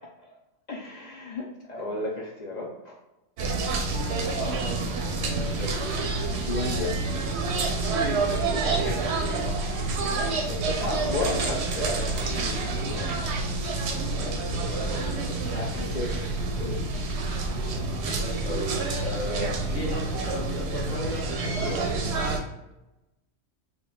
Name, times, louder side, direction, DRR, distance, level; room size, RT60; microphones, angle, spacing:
voice 1, 0.7-3.0 6.3-7.1 9.4-9.6 10.4-13.2 15.5-16.8, left 2 dB, 65° left, -2 dB, 0.4 m, -34 dB
sound 1, 3.4-22.4, right 3 dB, 70° right, 0.8 m, -28 dB
voice 2, 4.1-5.8 8.5-9.1 10.8-11.6 14.1-15.9 18.4-22.4, left 1 dB, 40° left, -3 dB, 1.0 m, -36 dB
3.6 x 2.2 x 3.7 m, 0.95 s
omnidirectional pair, 1.3 m